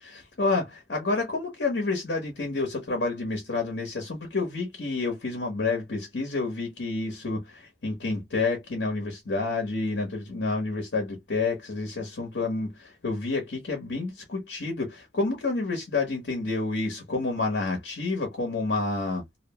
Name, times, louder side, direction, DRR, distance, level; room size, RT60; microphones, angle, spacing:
voice 1, 0.0-19.2, left 3 dB, 90° left, 1.1 m, -29 dB
2.9 x 2.1 x 2.8 m
head